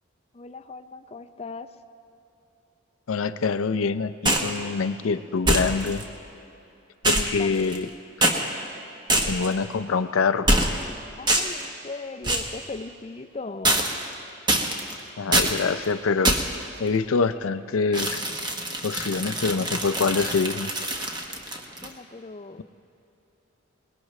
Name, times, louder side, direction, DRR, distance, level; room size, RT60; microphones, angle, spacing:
voice 1, 0.3-1.7 7.1-7.6 11.2-13.8 21.8-22.6, left 3 dB, 30° left, 10 dB, 0.5 m, -38 dB
voice 2, 3.1-6.0 7.0-7.9 9.3-10.5 15.2-16.4 16.8-18.2 18.8-20.7, left 5 dB, 85° left, 12 dB, 0.5 m, -25 dB
sound 1, 4.3-4.6 5.5-6.0 7.0-7.9 8.2-8.4 9.1-9.5 10.5-10.9 11.3-11.6 12.2-12.6 13.6-14.1 14.5-14.9 15.3-15.6 16.2-16.6 17.9-21.9, right 1 dB, 20° right, 1.1 m, -24 dB
22.5 x 20.0 x 3.2 m, 2.8 s
head